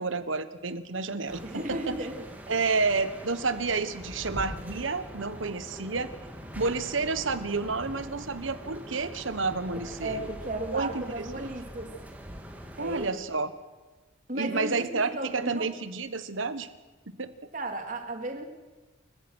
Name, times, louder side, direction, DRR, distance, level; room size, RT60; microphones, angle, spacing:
voice 1, 0.0-2.0 2.5-6.1 6.6-10.3 10.7-11.5 12.8-13.5 14.3-16.7 17.2-17.3, right 4 dB, 85° right, 13 dB, 1.3 m, -30 dB
sound 1, 1.3-13.1, equal, 10° right, 1.9 m, -43 dB
voice 2, 1.4-2.2 10.0-11.9 12.8-13.2 14.3-15.6 17.5-18.5, right 1 dB, 40° right, 4 dB, 2.5 m, -34 dB
29.0 x 15.0 x 6.4 m, 1.3 s
head